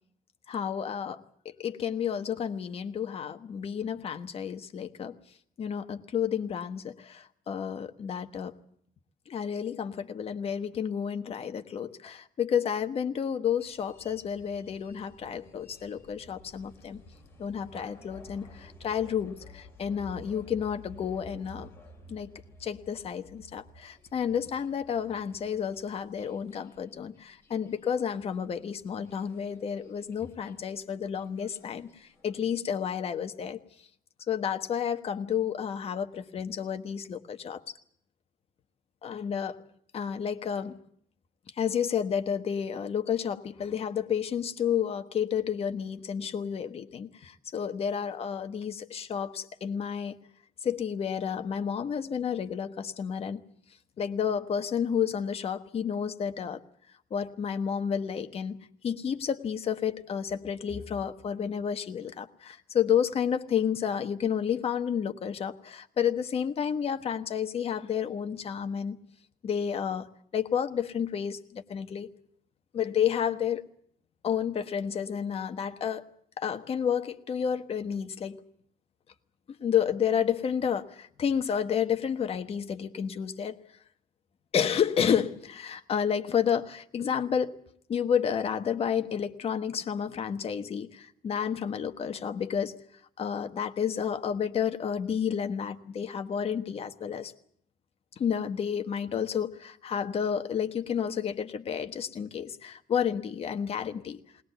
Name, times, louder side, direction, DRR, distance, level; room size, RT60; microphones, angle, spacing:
voice 1, 0.5-5.2 5.6-8.6 9.3-17.0 17.4-21.7 22.1-22.3 22.6-33.6 34.3-37.6 39.0-39.6 39.9-40.8 41.6-50.2 50.6-53.4 54.0-56.6 57.1-58.6 58.8-69.0 69.4-72.1 72.7-73.7 74.2-76.1 76.4-78.4 79.6-83.6 84.5-87.5 87.9-92.7 93.2-97.3 98.2-104.2, left 8 dB, 40° left, 8 dB, 1.3 m, -31 dB
sound 1, 13.6-28.4 28.7-28.8 29.0-32.4, left 1 dB, 15° left, 4.3 m, -53 dB
20.0 x 20.0 x 8.1 m, 0.66 s
cardioid pair, 160°, 15 cm